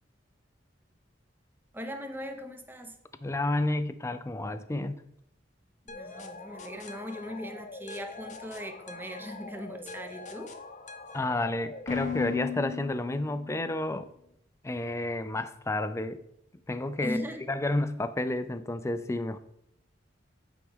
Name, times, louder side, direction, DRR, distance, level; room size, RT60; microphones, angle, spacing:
voice 1, 1.7-2.9 5.9-10.6 17.0-17.4, equal, 10° right, 0.7 m, -39 dB
voice 2, 3.2-5.0 11.1-14.1 14.6-16.2 16.7-19.4, left 2 dB, 15° left, 0.4 m, -31 dB
sound 1, 5.9-13.7, left 6 dB, 40° left, 0.7 m, -40 dB
9.0 x 4.7 x 3.6 m
head